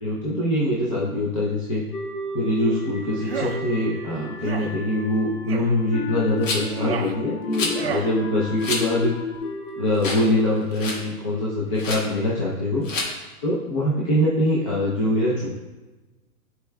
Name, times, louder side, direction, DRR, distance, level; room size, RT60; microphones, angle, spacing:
voice 1, 0.0-1.8 2.3-9.2 9.8-12.8 13.4-15.5, left 1 dB, 25° left, -7 dB, 0.6 m, -23 dB
sound 1, 1.9-11.1, left 3 dB, 80° left, 1.1 m, -33 dB
sound 2, 3.2-3.6 4.4-4.7 5.5-5.7 6.5-7.1 7.7-8.1, right 6 dB, 45° right, 0.4 m, -31 dB
Rattle, 6.4-6.8 7.5-7.8 8.6-8.8 9.3-9.4 10.0-10.3 10.6-11.0 11.8-12.0 12.8-13.1, left 3 dB, 55° left, 1.4 m, -28 dB
10.0 x 4.6 x 2.3 m, 1.2 s
hypercardioid pair, 160°, 45 cm